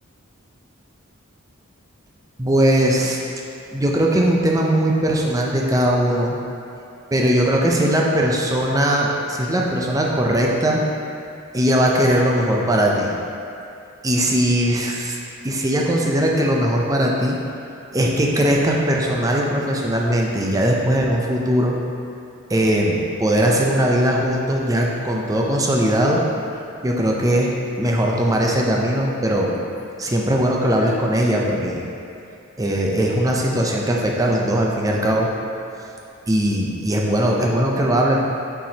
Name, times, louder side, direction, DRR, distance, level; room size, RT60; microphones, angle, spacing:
voice 1, 2.4-3.2 3.7-6.4 7.1-10.8 11.5-13.1 14.0-15.2 15.4-17.4 17.9-21.8 22.5-26.2 26.8-29.5 30.0-31.8 32.6-35.3 36.3-38.2, right 1 dB, 15° right, -2 dB, 0.5 m, -19 dB
7.2 x 4.6 x 2.8 m, 2.5 s
head